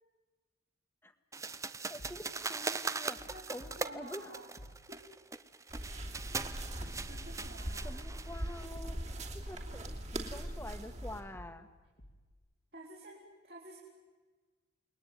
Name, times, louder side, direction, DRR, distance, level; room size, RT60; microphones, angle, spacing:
sound 1, 1.3-8.7, right 4 dB, 15° right, 0.7 m, -40 dB
voice 1, 1.9-2.2 2.5-3.2 3.5-4.3 7.8-9.0 9.3-11.7, left 1 dB, 10° left, 8 dB, 1.6 m, -47 dB
sound 2, 2.0-2.6 3.2-4.2 4.6-5.2 5.7-7.8 8.3-9.4 9.7-10.4 10.9-12.3, equal, 70° left, 2.1 m, -55 dB
voice 2, 3.3-4.5 4.9-5.1 7.1-8.0 10.6-10.9 12.7-13.8, right 1 dB, 60° right, -3 dB, 4.6 m, -51 dB
sound 3, 5.7-11.2, right 1 dB, 40° right, 3.0 m, -41 dB
29.0 x 20.5 x 9.3 m, 1.4 s
head